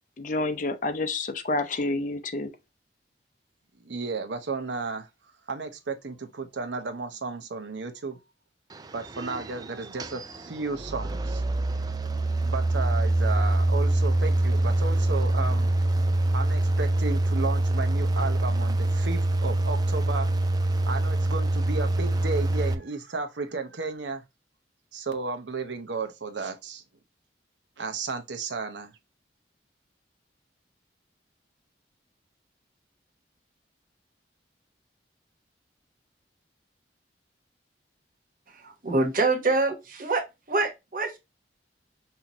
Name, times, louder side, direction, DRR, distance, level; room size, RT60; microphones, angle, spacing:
voice 1, 0.2-2.5, left 2 dB, 45° left, 0.6 m, -29 dB
voice 2, 3.8-5.1 5.5-8.2 8.9-11.4 12.4-15.7 16.3-20.3 20.9-24.2 24.9-26.8 27.8-28.9, right 4 dB, 80° right, 0.8 m, -33 dB
sound 1, 8.7-22.7, right 1 dB, 20° right, 0.3 m, -25 dB
voice 3, 38.5-41.2, right 3 dB, 50° right, 1.1 m, -26 dB
5.7 x 2.8 x 2.8 m
head